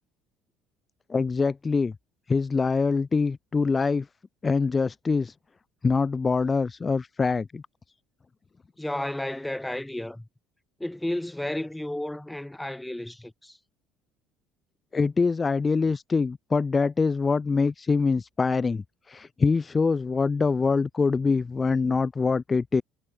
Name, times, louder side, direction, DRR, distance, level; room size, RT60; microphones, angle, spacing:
voice 1, 1.1-1.9 2.3-4.1 4.4-5.3 5.8-7.6 14.9-22.8, left 4 dB, 30° left, 0.9 m, -24 dB
voice 2, 8.8-10.3 10.8-13.6, left 1 dB, 5° left, 4.7 m, -32 dB
hypercardioid pair, 70°, 0 cm